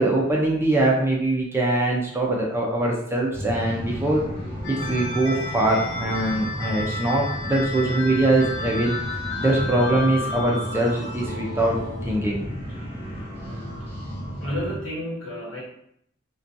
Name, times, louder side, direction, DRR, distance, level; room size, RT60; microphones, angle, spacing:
voice 1, 0.0-4.2 4.7-9.0 9.4-11.8 12.0-12.4, right 2 dB, 10° right, -2 dB, 0.3 m, -22 dB
sound 1, 3.3-14.8, equal, 30° left, 1.0 m, -33 dB
sound 2, 4.6-12.2, left 2 dB, 60° left, 0.4 m, -33 dB
voice 2, 14.4-15.6, equal, 80° left, -4 dB, 1.0 m, -31 dB
2.5 x 2.2 x 2.5 m, 0.72 s
head